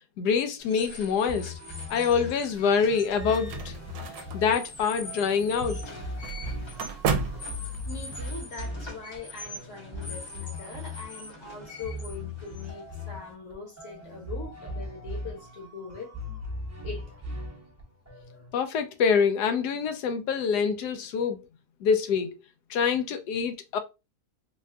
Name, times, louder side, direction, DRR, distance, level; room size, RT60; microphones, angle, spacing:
voice 1, 0.2-1.5 1.9-3.7 4.3-5.8 18.5-21.4 21.8-22.3 22.7-23.8, left 6 dB, 85° left, 1.2 m, -25 dB
sound 1, 0.6-13.3, left 2 dB, 25° left, 0.6 m, -44 dB
sound 2, 1.3-18.5, left 2 dB, 15° right, 0.6 m, -39 dB
sound 3, 2.8-8.2, right 5 dB, 80° right, 1.1 m, -34 dB
voice 2, 7.8-16.1 16.8-17.2, left 4 dB, 50° left, 1.3 m, -42 dB
4.1 x 2.3 x 2.4 m
omnidirectional pair, 1.7 m